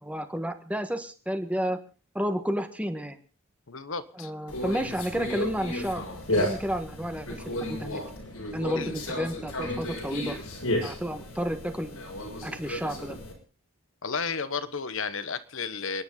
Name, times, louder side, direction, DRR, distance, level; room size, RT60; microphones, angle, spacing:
voice 1, 0.0-1.8 2.1-3.2 4.1-6.0 6.3-8.0 8.5-10.4 10.8-12.0 12.4-13.2, equal, 5° right, 1.4 m, -31 dB
voice 2, 3.7-4.3 8.8-8.9 14.0-16.0, left 5 dB, 65° left, 1.2 m, -32 dB
Conversation, 4.5-13.3, left 1 dB, 90° left, 6.3 m, -33 dB
30.0 x 10.5 x 3.9 m
head